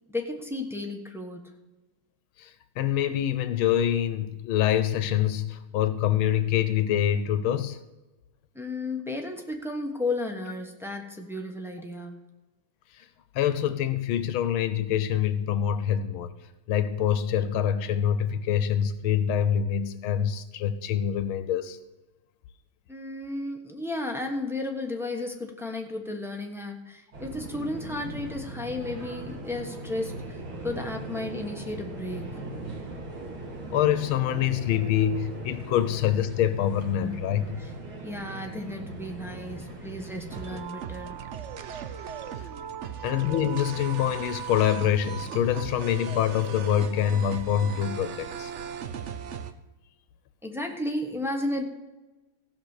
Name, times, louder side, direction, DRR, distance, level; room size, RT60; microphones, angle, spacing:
voice 1, 0.1-1.4 8.5-12.2 22.9-32.4 37.0-37.7 38.0-41.2 50.4-51.7, left 2 dB, ahead, 0.9 m, -33 dB
voice 2, 2.4-7.8 12.9-13.1 13.4-16.3 16.7-21.8 33.7-37.6 42.4-42.5 43.0-48.5, left 10 dB, 90° left, 1.6 m, -25 dB
sound 1, 27.1-40.6, right 2 dB, 90° right, 3.1 m, -39 dB
sound 2, 40.3-49.5, right 8 dB, 70° right, 0.7 m, -37 dB
16.0 x 5.9 x 6.6 m
omnidirectional pair, 2.2 m